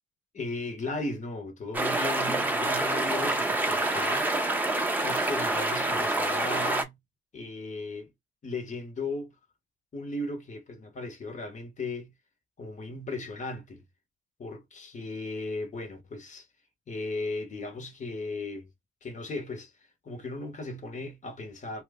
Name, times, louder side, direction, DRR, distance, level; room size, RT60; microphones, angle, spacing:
voice 1, 0.3-4.3 5.0-7.0 7.3-8.1 8.4-9.3 9.9-12.1 12.6-13.8 14.4-16.5 16.9-18.7 19.0-19.7 20.0-21.8, left 2 dB, 40° left, 1.0 m, -36 dB
sound 1, 1.7-6.8, right 2 dB, 10° right, 0.6 m, -27 dB
3.1 x 2.1 x 3.5 m
cardioid pair, 115°, 20 cm